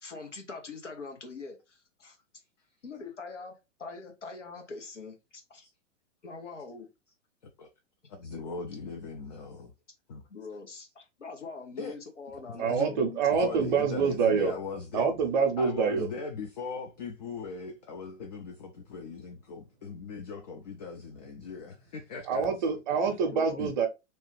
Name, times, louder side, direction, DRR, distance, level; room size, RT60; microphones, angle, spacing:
voice 1, 0.0-2.2 2.8-5.7 6.2-6.9 10.3-13.5 23.3-23.6, left 4 dB, 75° left, 0.9 m, -43 dB
voice 2, 8.1-9.7 10.1-10.2 11.8-11.9 12.4-12.9 13.3-15.1 15.6-22.8 23.6-23.8, left 4 dB, 35° left, 0.4 m, -39 dB
voice 3, 12.6-14.5 14.9-16.1 22.3-23.9, right 5 dB, 40° right, 0.7 m, -26 dB
2.9 x 2.3 x 3.0 m
figure-of-eight pair, 105°, 37 cm